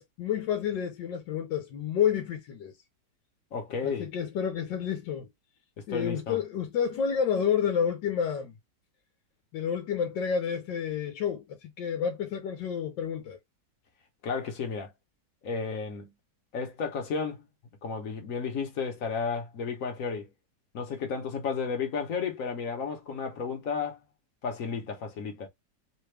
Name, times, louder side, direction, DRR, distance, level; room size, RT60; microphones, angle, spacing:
voice 1, 0.0-2.7 3.8-5.3 5.9-8.5 9.5-13.4, left 8 dB, 90° left, 1.4 m, -29 dB
voice 2, 3.5-4.1 5.9-6.4 14.2-14.9 15.4-16.1 16.5-17.4 17.8-20.2 20.7-24.0 24.4-25.5, left 5 dB, 55° left, 1.2 m, -32 dB
3.3 x 2.4 x 3.2 m
omnidirectional pair, 1.9 m